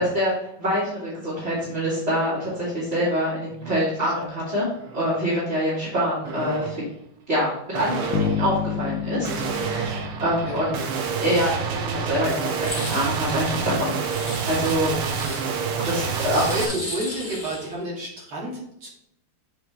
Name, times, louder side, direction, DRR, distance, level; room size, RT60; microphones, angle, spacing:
voice 1, 0.0-4.7 4.9-6.8 7.3-10.8 11.2-13.9 14.5-14.9 15.9-16.4, equal, 30° right, -10 dB, 3.2 m, -25 dB
sound 1, 2.9-3.1 3.5-4.2 4.8-5.2 6.3-6.9 7.7-16.7, right 6 dB, 80° right, 1.8 m, -29 dB
sound 2, 8.1-11.2, left 9 dB, 80° left, 1.0 m, -29 dB
voice 2, 10.4-10.7 14.8-18.9, right 1 dB, 60° right, -6 dB, 3.5 m, -32 dB
sound 3, 12.6-13.1 14.1-15.4 16.0-17.8, left 1 dB, 10° left, 2.2 m, -36 dB
8.2 x 4.9 x 3.3 m, 0.77 s
omnidirectional pair, 2.4 m